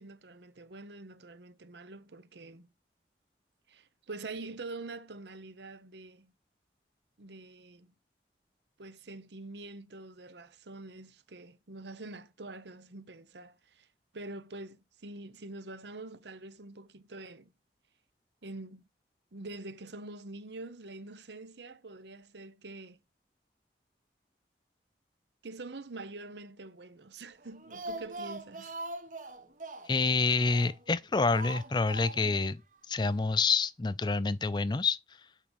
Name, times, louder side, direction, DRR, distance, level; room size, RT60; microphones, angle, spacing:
voice 1, 0.0-2.7 3.7-6.3 7.2-7.9 8.8-13.9 14.1-17.5 18.4-18.8 19.3-23.0 25.4-28.7, right 2 dB, 80° right, 0.9 m, -45 dB
Speech, 27.4-30.9 31.3-32.5 32.7-32.8 33.1-33.2, right 2 dB, 45° right, 1.2 m, -42 dB
voice 2, 29.9-32.6 32.9-35.0, left 4 dB, 25° left, 0.4 m, -27 dB
8.6 x 5.0 x 5.2 m
head